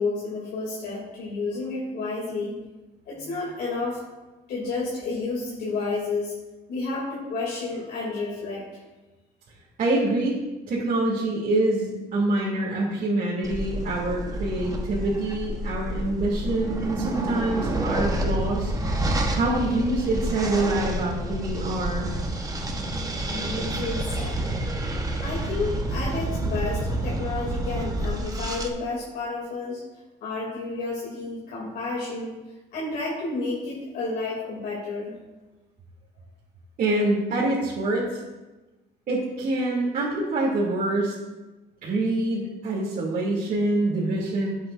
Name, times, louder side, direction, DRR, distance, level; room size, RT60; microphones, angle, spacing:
voice 1, 0.0-2.6 3.1-4.0 4.5-6.3 6.7-8.8 23.3-24.4 25.2-29.8 30.2-32.4 32.7-35.2, left 3 dB, 70° left, -5 dB, 2.7 m, -31 dB
voice 2, 9.8-10.4 10.7-22.1 36.8-38.2 39.1-41.1 41.8-44.6, right 2 dB, 55° right, -8 dB, 2.7 m, -26 dB
sound 1, 13.4-28.7, right 1 dB, 20° right, 1.1 m, -29 dB
12.5 x 8.2 x 2.6 m, 1.1 s
cardioid pair, 110°, 17 cm